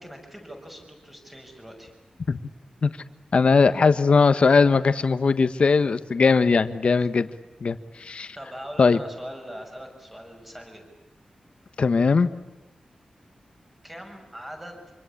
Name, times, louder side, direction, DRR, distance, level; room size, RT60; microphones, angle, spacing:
voice 1, 0.0-1.9 7.0-7.1 8.3-10.9 13.8-14.8, equal, 10° right, 2 dB, 6.7 m, -41 dB
voice 2, 3.3-7.3 7.6-8.3 8.8-9.0 11.8-12.3, left 4 dB, 50° left, 12 dB, 1.3 m, -19 dB
26.5 x 25.5 x 8.5 m, 1.1 s
wide cardioid pair, 165°, 2 cm